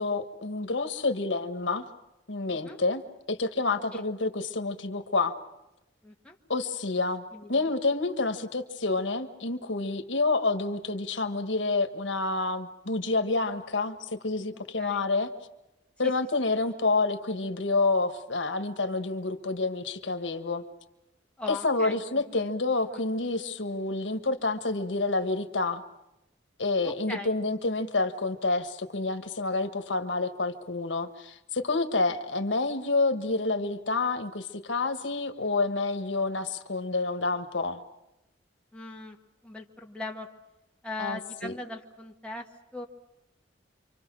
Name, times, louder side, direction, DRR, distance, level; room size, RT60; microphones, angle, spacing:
voice 1, 0.0-1.8 2.3-3.0 3.3-5.3 6.5-7.2 7.5-15.3 16.0-20.6 21.5-25.8 26.6-37.8 41.0-41.5, left 3 dB, 85° left, 8 dB, 1.5 m, -28 dB
voice 2, 6.0-6.3 7.3-7.7 14.8-15.1 21.4-22.5 26.8-27.4 38.7-39.2 39.4-40.3 40.8-42.5 42.7-42.9, left 2 dB, 5° left, 0 dB, 1.7 m, -40 dB
27.5 x 25.0 x 6.2 m, 0.91 s
head